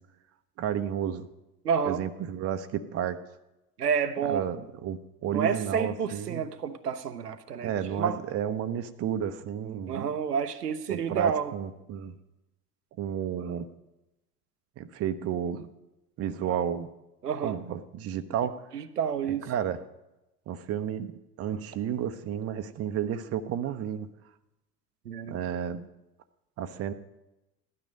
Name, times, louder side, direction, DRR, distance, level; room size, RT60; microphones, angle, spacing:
voice 1, 0.6-1.3 1.9-3.2 4.2-6.4 7.6-10.1 10.9-12.1 13.0-13.7 14.8-15.7 16.2-16.9 17.4-18.6 19.4-19.8 20.5-21.1 21.4-24.1 25.3-25.9 26.6-26.9, right 9 dB, 30° right, 10 dB, 0.8 m, -32 dB
voice 2, 1.6-2.0 3.8-4.5 5.3-8.2 9.9-11.5 16.4-16.6 17.2-17.6 18.7-19.5 25.1-25.4, right 7 dB, 80° right, 10 dB, 0.8 m, -29 dB
15.5 x 12.0 x 5.2 m, 0.97 s
figure-of-eight pair, 70°, 46 cm